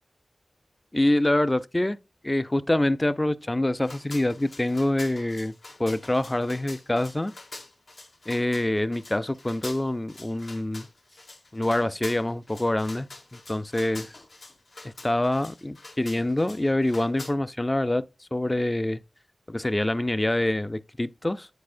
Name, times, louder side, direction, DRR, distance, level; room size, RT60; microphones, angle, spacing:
voice 1, 0.9-2.0 2.2-5.5 5.8-7.3 8.3-10.9 11.5-14.2 14.8-18.0 18.3-19.0 19.5-21.5, left 1 dB, 20° left, 0.4 m, -25 dB
sound 1, 3.8-17.3, left 2 dB, 75° left, 1.4 m, -45 dB
9.5 x 4.3 x 2.5 m
wide cardioid pair, 90°, 0 cm